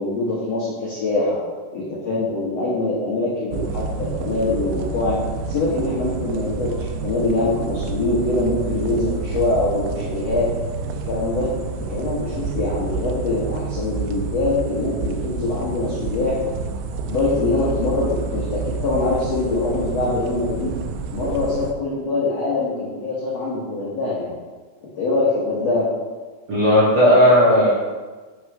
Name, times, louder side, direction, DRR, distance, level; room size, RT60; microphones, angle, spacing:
voice 1, 0.0-1.4 1.7-5.2 5.5-10.5 10.8-11.5 11.9-16.4 17.0-20.7 21.1-24.3 24.8-25.9, left 2 dB, 80° left, -6 dB, 1.4 m, -23 dB
sound 1, 3.5-21.7, right 4 dB, 85° right, 2.9 m, -29 dB
voice 2, 26.5-27.7, equal, 45° right, -9 dB, 1.8 m, -14 dB
6.5 x 6.3 x 4.8 m, 1.3 s
omnidirectional pair, 5.2 m